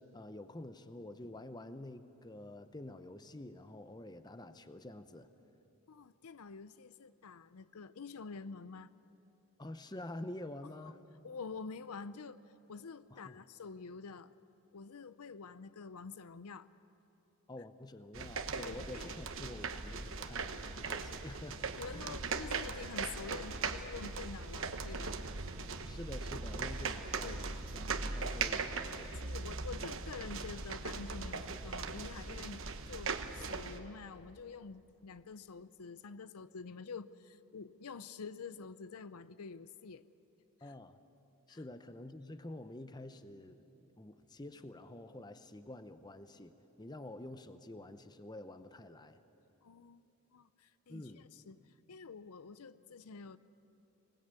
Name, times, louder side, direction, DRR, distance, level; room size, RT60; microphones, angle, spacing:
voice 1, 0.0-5.3 9.6-11.0 13.1-13.4 17.5-22.2 25.9-29.2 40.6-41.0 41.5-49.2 50.9-51.3, left 1 dB, 20° left, 10 dB, 0.7 m, -48 dB
voice 2, 5.9-8.9 10.8-10.9 11.2-12.4 12.7-14.3 14.7-16.7 18.5-19.1 21.8-25.2 27.2-27.4 29.2-40.1 40.6-40.7 41.5-41.6 49.6-50.0 50.3-53.4, left 5 dB, 85° left, 15 dB, 0.6 m, -47 dB
sound 1, 18.1-33.8, right 4 dB, 60° right, 1.1 m, -39 dB
25.5 x 19.5 x 8.3 m, 2.9 s
head